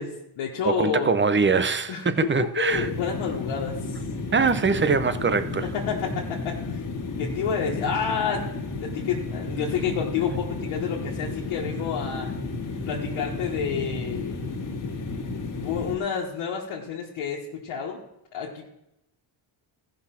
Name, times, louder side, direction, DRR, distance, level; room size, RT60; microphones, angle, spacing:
voice 1, 0.0-1.1 1.9-4.0 5.6-6.6 7.2-8.4 8.8-12.3 12.8-14.4 15.6-18.0 18.3-18.6, left 7 dB, 85° left, 1.6 m, -29 dB
voice 2, 0.6-2.9 4.3-5.7, right 4 dB, 25° right, 0.9 m, -23 dB
sound 1, 2.7-16.0, left 3 dB, 40° left, 1.9 m, -32 dB
14.5 x 6.1 x 5.9 m
cardioid pair, 75°, 46 cm